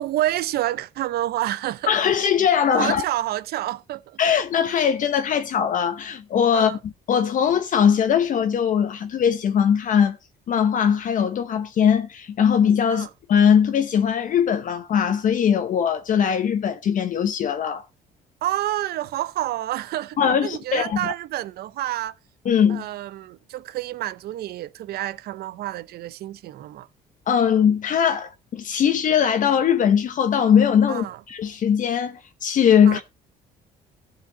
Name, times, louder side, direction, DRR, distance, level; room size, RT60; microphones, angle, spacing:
voice 1, 0.0-2.0 2.8-4.2 6.5-6.8 12.9-13.1 18.4-22.1 22.7-26.9 30.9-31.2 32.8-33.0, right 14 dB, 70° right, 0.7 m, -28 dB
voice 2, 1.9-3.0 4.2-10.2 10.5-17.8 20.2-21.1 22.4-22.8 27.3-33.0, left 8 dB, 50° left, 1.0 m, -20 dB
14.5 x 5.9 x 4.1 m
cardioid pair, 110°, 17 cm